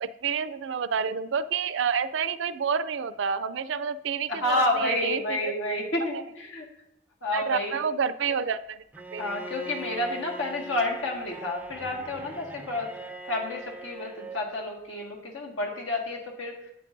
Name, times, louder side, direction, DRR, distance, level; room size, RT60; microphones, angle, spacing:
voice 1, 0.0-5.5 6.1-6.2 7.3-8.8 9.1-9.3, right 6 dB, 75° right, 15 dB, 0.4 m, -29 dB
voice 2, 4.3-6.7 7.2-7.8 9.2-12.9 13.2-16.5, left 2 dB, 85° left, 0 dB, 1.9 m, -30 dB
Bowed string instrument, 8.9-14.5, right 2 dB, 10° right, 0.4 m, -41 dB
11.0 x 8.9 x 2.6 m, 0.82 s
head